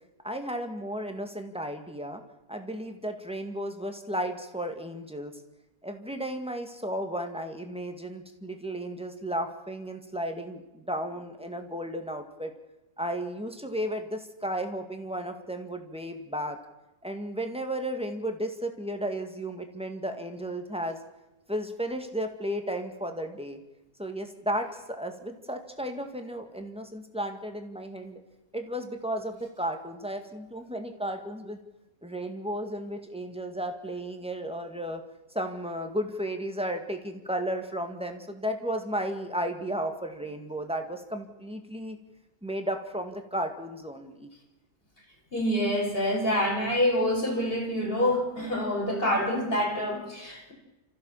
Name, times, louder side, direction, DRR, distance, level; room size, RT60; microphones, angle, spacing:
voice 1, 0.2-2.2 2.5-5.4 5.8-12.5 13.0-16.6 17.0-21.0 21.5-23.6 24.0-28.2 28.5-31.6 32.0-35.0 35.3-42.0 42.4-44.3, equal, 5° right, 5 dB, 1.9 m, -34 dB
voice 2, 45.3-50.5, left 1 dB, 40° left, 2 dB, 4.8 m, -26 dB
30.0 x 14.5 x 7.2 m, 1.0 s
omnidirectional pair, 1.5 m